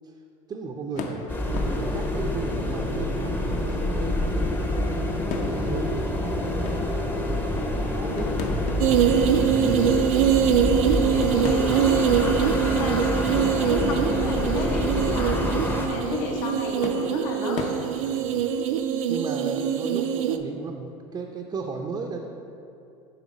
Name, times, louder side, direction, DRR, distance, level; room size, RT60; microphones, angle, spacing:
voice 1, 0.5-4.8 5.3-9.2 18.2-18.5 19.1-22.2, right 4 dB, 25° right, 2 dB, 0.5 m, -35 dB
sound 1, 0.9-18.3, left 4 dB, 45° left, 0.7 m, -39 dB
sound 2, 1.3-15.9, left 1 dB, 10° left, 0.7 m, -27 dB
sound 3, 8.8-20.4, right 8 dB, 80° right, 0.4 m, -23 dB
voice 2, 10.8-15.5 15.9-17.6, left 2 dB, 75° left, 0 dB, 1.2 m, -33 dB
7.1 x 3.5 x 5.1 m, 2.8 s
supercardioid pair, 105°, 17 cm